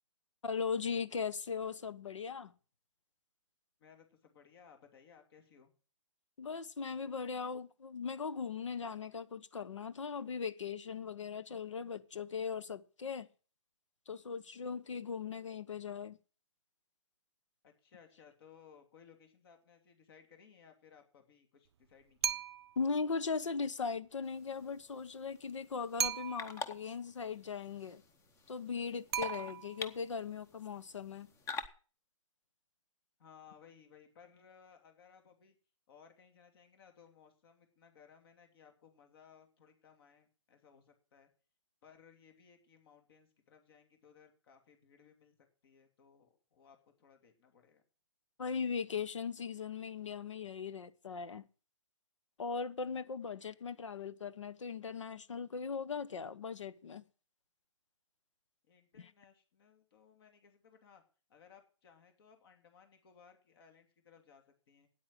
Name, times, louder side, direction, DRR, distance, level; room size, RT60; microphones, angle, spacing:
voice 1, 0.4-2.5 6.4-13.3 14.1-16.2 22.8-28.0 28.5-31.3 48.4-51.4 52.4-57.1 59.0-59.1, left 5 dB, 75° left, 1.0 m, -39 dB
voice 2, 3.8-5.7 17.6-22.4 33.2-35.6 35.9-41.3 41.8-45.3 45.6-47.8 58.6-61.0 61.3-64.9, left 7 dB, 50° left, 2.8 m, -62 dB
sound 1, 22.2-22.8 26.0-26.7 29.1-29.9, right 8 dB, 55° right, 0.5 m, -37 dB
sound 2, 24.2-31.7, left 5 dB, 15° left, 0.9 m, -48 dB
9.2 x 8.8 x 7.6 m
figure-of-eight pair, 130°, 16 cm